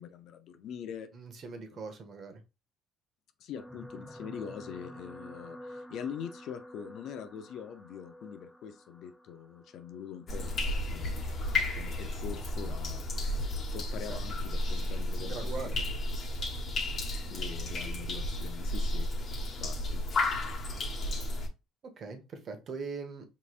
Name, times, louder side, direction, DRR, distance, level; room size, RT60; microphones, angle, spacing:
voice 1, 0.0-1.1 1.7-1.8 3.4-10.5 10.9-13.4 13.7-15.8 17.3-19.1 19.6-20.0, left 8 dB, 60° left, 0.7 m, -43 dB
voice 2, 1.1-2.4 14.1-14.2 15.2-15.8 22.0-23.2, right 4 dB, 45° right, 1.2 m, -41 dB
sound 1, 3.6-12.0 12.8-13.0 13.3-13.4, equal, ahead, 0.6 m, -50 dB
sound 2, 10.3-21.5, left 1 dB, 40° left, 1.3 m, -33 dB
5.4 x 3.2 x 2.5 m
cardioid pair, 115°, 0 cm